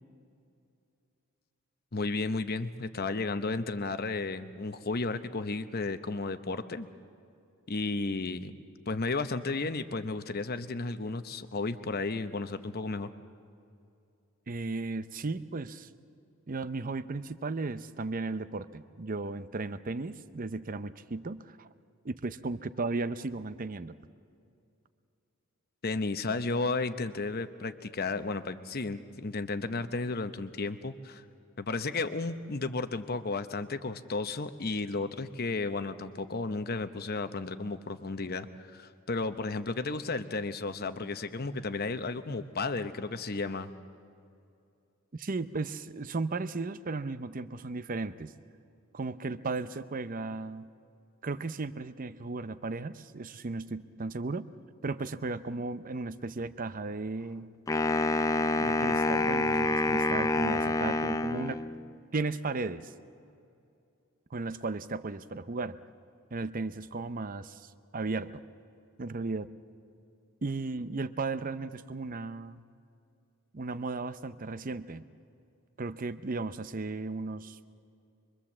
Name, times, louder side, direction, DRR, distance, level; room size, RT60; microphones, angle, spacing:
voice 1, 1.9-6.9 7.7-8.5 8.9-13.1 25.8-31.2 31.6-43.7, left 3 dB, 45° left, 10 dB, 0.9 m, -33 dB
voice 2, 14.5-15.9 16.5-21.7 22.0-24.0 45.1-48.3 48.9-50.7 51.2-54.5 54.8-57.5 58.6-61.6 62.1-62.9 64.3-65.8 66.3-68.4 69.0-69.5 70.4-72.6 73.5-75.0 75.8-77.6, right 3 dB, 40° right, 13 dB, 0.6 m, -35 dB
Wind instrument woodwind instrument, 57.7-61.9, left 2 dB, 15° left, 0.5 m, -27 dB
25.0 x 23.0 x 7.4 m, 2.6 s
head